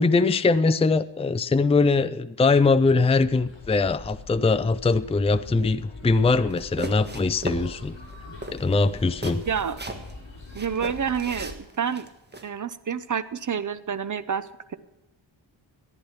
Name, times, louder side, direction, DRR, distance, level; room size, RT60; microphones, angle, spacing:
voice 1, 0.0-8.0 8.5-9.4, left 3 dB, 15° left, 13 dB, 0.5 m, -22 dB
sound 1, 3.1-11.5, left 3 dB, 65° left, 6.2 m, -43 dB
sound 2, 6.5-7.7 8.0-8.2 8.4-10.1 10.5-12.5, right 2 dB, 20° right, 1.5 m, -36 dB
voice 2, 9.5-9.8 10.5-12.1 12.4-14.8, right 7 dB, 40° right, 13 dB, 0.8 m, -28 dB
14.5 x 10.5 x 5.9 m, 0.98 s
wide cardioid pair, 125°, 47 cm